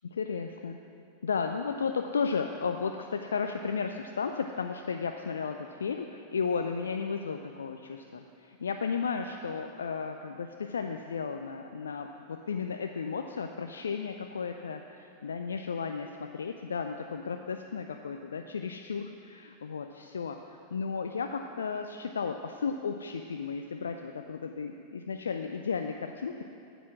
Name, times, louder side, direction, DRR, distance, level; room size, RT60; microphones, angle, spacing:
voice 1, 0.1-0.8 1.2-26.4, left 5 dB, 70° left, 5 dB, 0.5 m, -34 dB
13.5 x 8.0 x 6.2 m, 2.8 s
figure-of-eight pair, 90°, 0 cm